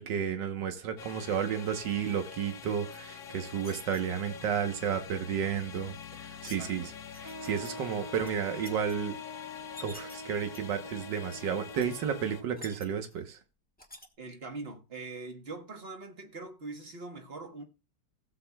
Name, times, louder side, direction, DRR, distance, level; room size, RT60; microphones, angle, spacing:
voice 1, 0.0-5.9 6.2-6.8 7.2-9.1 9.8-13.4, right 8 dB, 80° right, 1.8 m, -32 dB
sound 1, 1.0-12.4, left 7 dB, 60° left, 0.8 m, -46 dB
sound 2, 2.9-4.0 5.7-6.6 7.1-7.7 8.1-8.9 9.5-10.2 10.5-10.9 11.3-11.4 11.7-11.9 12.2-13.2 13.8-14.1, left 1 dB, 5° left, 0.8 m, -49 dB
voice 2, 6.4-6.9 14.2-17.6, right 3 dB, 40° right, 1.3 m, -42 dB
Wind instrument woodwind instrument, 7.2-13.0, left 3 dB, 20° right, 1.1 m, -45 dB
16.0 x 7.9 x 2.3 m
omnidirectional pair, 1.9 m